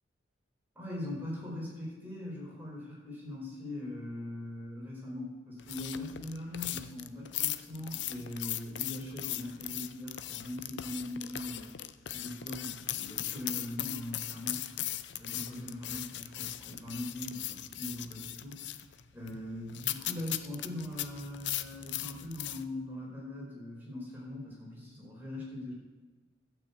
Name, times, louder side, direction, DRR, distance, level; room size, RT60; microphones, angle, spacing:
voice 1, 0.7-11.7 12.1-14.7 15.2-18.7 19.1-25.7, left 1 dB, 10° right, -5 dB, 4.5 m, -41 dB
sound 1, 5.6-22.6, left 13 dB, 80° left, 0.6 m, -38 dB
12.0 x 6.2 x 8.2 m, 1.3 s
head